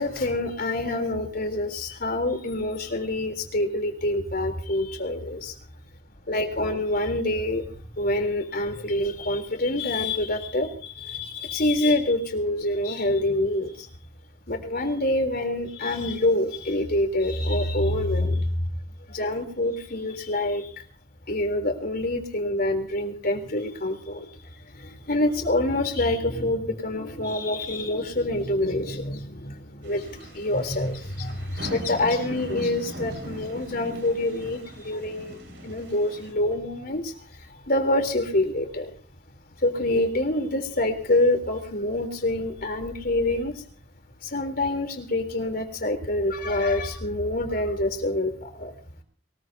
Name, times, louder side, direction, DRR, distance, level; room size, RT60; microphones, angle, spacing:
voice 1, 0.0-5.6 6.3-13.9 14.5-18.6 19.1-20.8 21.3-38.9 39.6-43.6 44.2-48.7, left 1 dB, 55° left, 5 dB, 3.5 m, -26 dB
sound 1, 29.8-36.3, equal, 70° right, 5.4 m, -40 dB
23.0 x 20.5 x 2.8 m, 0.44 s
head